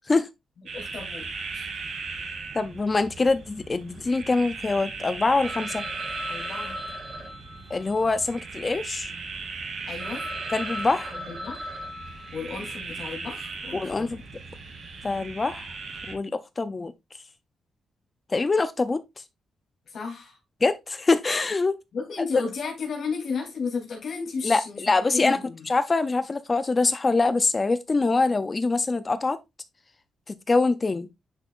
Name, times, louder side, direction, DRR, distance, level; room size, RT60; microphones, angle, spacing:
voice 1, 0.7-1.3 1.5-1.7 6.3-6.8 9.9-10.3 11.1-11.7 12.3-14.2 19.9-20.4 21.9-24.8 25.1-25.7, left 5 dB, 60° left, 3.0 m, -33 dB
sound 1, 0.7-16.1, right 4 dB, 60° right, 2.9 m, -38 dB
voice 2, 2.5-5.8 7.7-9.1 10.5-11.2 13.7-14.2 15.0-15.7 16.1-16.9 18.3-19.0 20.6-21.8 24.4-25.4 25.7-29.4 30.3-31.1, left 3 dB, 25° left, 0.5 m, -24 dB
Telephone, 5.4-9.2 9.7-9.8 10.0-12.9, equal, 25° right, 3.4 m, -39 dB
10.0 x 5.5 x 2.5 m
cardioid pair, 120°, 0 cm